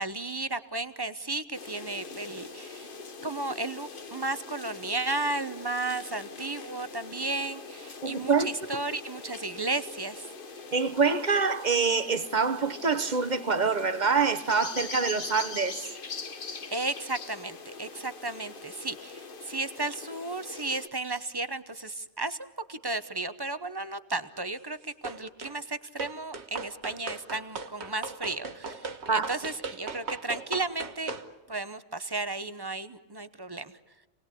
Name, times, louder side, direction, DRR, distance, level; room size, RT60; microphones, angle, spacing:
voice 1, 0.0-2.9 3.2-10.3 16.7-24.8 25.0-31.1 31.5-33.7, right 2 dB, 20° right, 0.8 m, -34 dB
sound 1, 1.5-20.9, left 4 dB, 45° left, 1.3 m, -42 dB
voice 2, 8.0-8.5 10.7-15.9 29.1-29.3, right 5 dB, 40° right, 1.1 m, -26 dB
sound 2, 25.0-25.6 26.0-31.3, right 4 dB, 65° right, 1.6 m, -38 dB
28.0 x 20.0 x 8.5 m
omnidirectional pair, 1.3 m